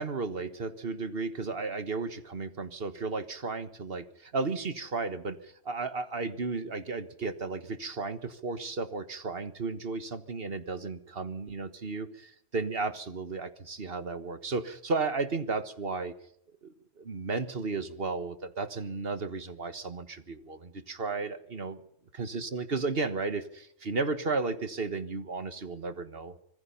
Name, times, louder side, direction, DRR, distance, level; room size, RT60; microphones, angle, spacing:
voice 1, 0.0-16.1 16.6-21.8 22.1-26.4, right 3 dB, 60° right, 11 dB, 1.7 m, -34 dB
26.0 x 20.5 x 5.6 m, 0.71 s
omnidirectional pair, 1.1 m